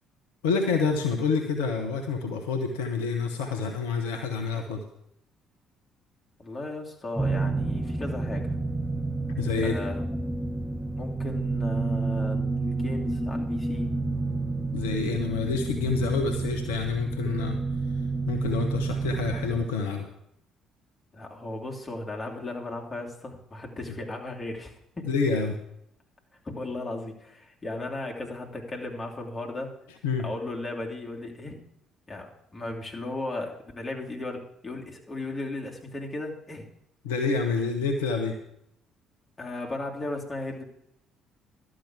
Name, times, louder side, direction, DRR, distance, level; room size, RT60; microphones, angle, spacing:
voice 1, 0.4-4.8 9.4-9.7 14.7-17.6 18.3-20.1 25.1-25.6 30.0-30.3 37.0-38.3, left 5 dB, 75° left, 3 dB, 1.0 m, -28 dB
voice 2, 6.4-8.7 9.6-10.0 11.0-13.9 21.1-25.1 26.4-29.7 30.2-31.6 32.1-36.7 39.4-40.6, left 2 dB, 25° left, 0 dB, 2.8 m, -36 dB
sound 1, 7.2-19.7, right 3 dB, 5° right, 0.8 m, -29 dB
12.0 x 6.3 x 8.2 m, 0.75 s
figure-of-eight pair, 50°, 0 cm